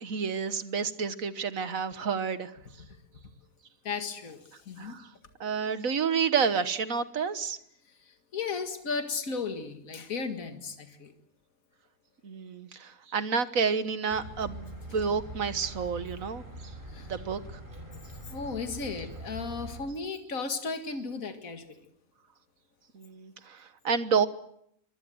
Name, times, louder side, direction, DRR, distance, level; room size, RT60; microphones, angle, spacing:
voice 1, 0.0-2.5 4.8-5.1 5.4-7.6 12.2-16.4 17.1-17.4 22.9-24.3, right 6 dB, 65° right, 12 dB, 1.7 m, -29 dB
voice 2, 3.8-5.0 8.1-11.1 16.9-17.1 18.3-21.6, left 4 dB, 65° left, 6 dB, 2.4 m, -35 dB
sound 1, 14.1-19.8, right 1 dB, 35° right, 5.8 m, -43 dB
24.5 x 21.0 x 7.9 m, 0.72 s
omnidirectional pair, 1.6 m